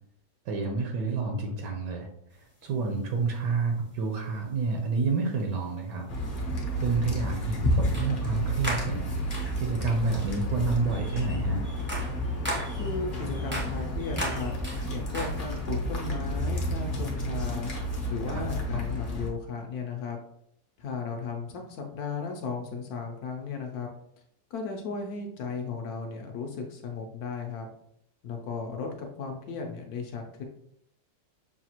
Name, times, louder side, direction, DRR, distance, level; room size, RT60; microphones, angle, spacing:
voice 1, 0.5-2.1 2.6-6.1 6.8-9.1 9.6-11.6 18.3-18.4, right 4 dB, 75° right, 2 dB, 1.2 m, -29 dB
sound 1, 2.6-2.7 4.3-4.5 5.5-5.6 7.9-8.3 8.6-9.7 10.2-10.5 10.9-15.8, right 1 dB, 15° right, 0.3 m, -37 dB
sound 2, 6.1-19.3, equal, 50° left, 0.6 m, -31 dB
voice 2, 12.8-14.5 14.9-17.7 18.1-20.2 20.8-23.9 24.5-27.7 28.2-30.4, left 5 dB, 70° left, 3 dB, 0.9 m, -35 dB
5.8 x 2.3 x 2.9 m, 0.73 s
omnidirectional pair, 2.0 m